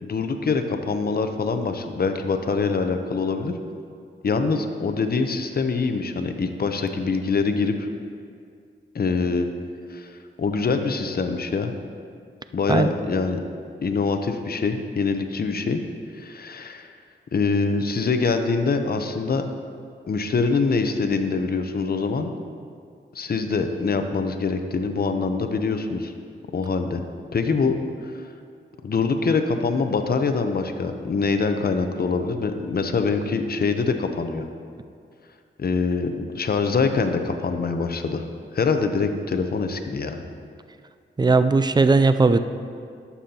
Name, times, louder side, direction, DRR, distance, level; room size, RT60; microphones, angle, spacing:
voice 1, 0.0-3.6 4.2-7.9 8.9-9.5 9.9-10.1 10.4-11.7 12.5-13.4 13.8-15.8 16.1-16.9 17.3-19.4 20.1-22.3 23.1-26.1 26.5-27.0 27.3-27.7 28.0-28.3 28.8-34.5 35.6-38.2 38.5-40.2, left 4 dB, 50° left, 6 dB, 0.7 m, -24 dB
voice 2, 41.2-42.4, right 3 dB, 20° right, 11 dB, 0.4 m, -17 dB
11.5 x 7.0 x 2.9 m, 2.3 s
cardioid pair, 55°, 20 cm